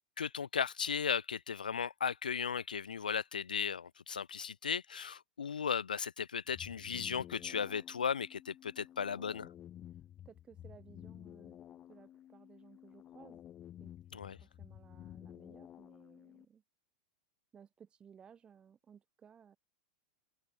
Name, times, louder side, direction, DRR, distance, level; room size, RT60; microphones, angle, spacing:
voice 1, 0.2-9.5 14.1-14.4, left 7 dB, 75° left, 0.3 m, -36 dB
sound 1, 6.5-16.5, left 11 dB, 30° left, 1.4 m, -53 dB
voice 2, 10.2-11.6 11.9-13.4 13.8-13.9 14.2-16.6 17.5-19.6, right 7 dB, 20° right, 2.4 m, -59 dB
figure-of-eight pair, 95°, 5 cm